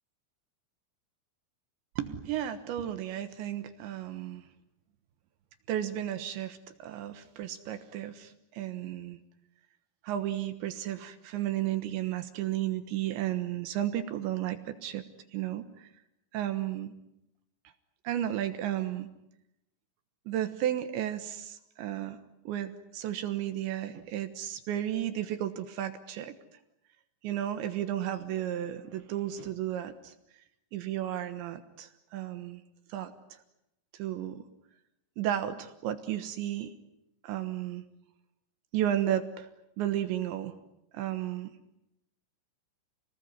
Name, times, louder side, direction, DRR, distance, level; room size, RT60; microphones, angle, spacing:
voice 1, 2.0-4.4 5.7-9.2 10.0-15.0 15.3-15.9 16.3-16.9 18.0-19.1 20.3-22.2 22.4-26.3 27.2-30.1 30.7-32.6 32.9-33.1 33.9-34.4 35.2-36.7 37.2-37.8 38.7-39.5 39.8-40.5 40.9-41.5, right 11 dB, 70° right, 10 dB, 3.3 m, -33 dB
29.0 x 19.5 x 9.7 m, 0.84 s
omnidirectional pair, 5.9 m